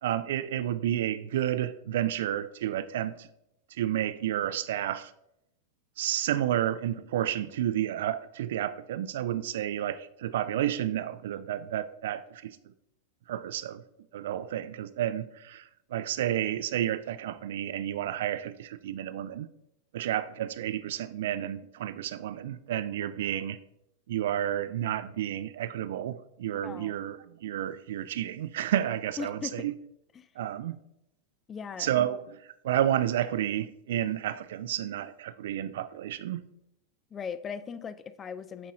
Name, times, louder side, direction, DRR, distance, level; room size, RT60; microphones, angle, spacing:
voice 1, 0.0-3.3 3.8-5.1 6.0-12.6 13.3-13.8 14.1-19.5 19.9-23.6 24.1-29.7 30.4-30.8 31.8-32.4 32.6-36.5, right 11 dB, 55° right, 0.3 m, -31 dB
voice 2, 26.6-27.1 29.2-29.7 30.1-30.3 31.5-31.9 37.1-38.7, left 6 dB, 20° left, 0.3 m, -38 dB
7.6 x 4.2 x 3.7 m
figure-of-eight pair, 90°, 0 cm